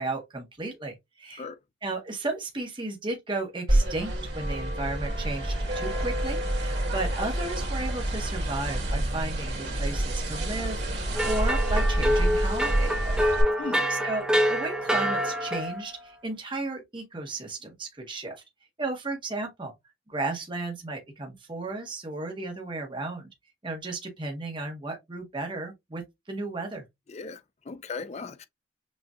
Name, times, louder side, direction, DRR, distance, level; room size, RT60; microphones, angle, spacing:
voice 1, 0.0-1.5 1.8-13.2 13.9-18.3 18.8-19.7 20.1-23.3 23.6-26.0 26.3-26.8, right 2 dB, 25° right, 1.1 m, -34 dB
sound 1, 3.7-13.4, right 1 dB, 60° right, 2.1 m, -28 dB
sound 2, 11.1-15.9, equal, 5° right, 0.9 m, -26 dB
voice 2, 27.1-28.4, left 4 dB, 35° left, 0.4 m, -37 dB
6.3 x 2.5 x 2.3 m
head